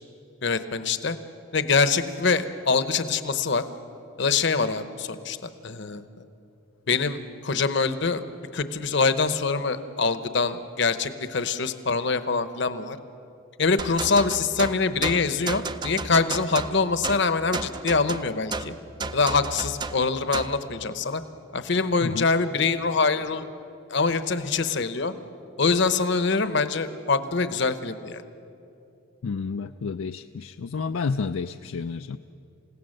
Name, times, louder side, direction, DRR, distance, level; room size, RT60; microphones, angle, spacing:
voice 1, 0.4-1.2 1.5-3.6 4.2-6.0 6.9-8.2 8.5-13.0 13.6-18.7 19.1-21.2 21.5-23.5 23.9-25.1 25.6-28.2, left 4 dB, 55° left, 11 dB, 0.9 m, -24 dB
sound 1, 13.8-20.6, right 3 dB, 20° right, 0.5 m, -33 dB
voice 2, 29.2-32.2, left 5 dB, 70° left, 8 dB, 0.4 m, -30 dB
28.0 x 16.5 x 6.6 m, 2.7 s
head